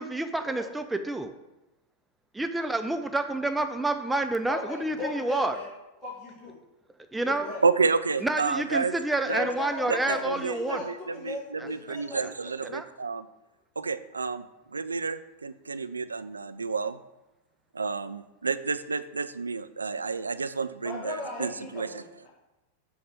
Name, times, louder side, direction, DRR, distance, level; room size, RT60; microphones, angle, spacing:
voice 1, 0.0-1.3 2.3-5.6 7.1-7.5 8.2-10.8 11.6-11.7 12.2-12.3 12.6-12.9, right 2 dB, 5° right, 7 dB, 0.4 m, -29 dB
voice 2, 4.5-5.7 6.0-6.5 7.2-7.6 9.3-12.5 20.8-22.3, left 2 dB, 15° left, -9 dB, 2.1 m, -37 dB
voice 3, 7.6-8.9 9.3-9.5 9.9-13.3 13.8-14.4 14.7-17.0 17.7-22.0, right 4 dB, 75° right, 12 dB, 0.3 m, -30 dB
7.0 x 3.2 x 5.2 m, 1.0 s
figure-of-eight pair, 90°, 0 cm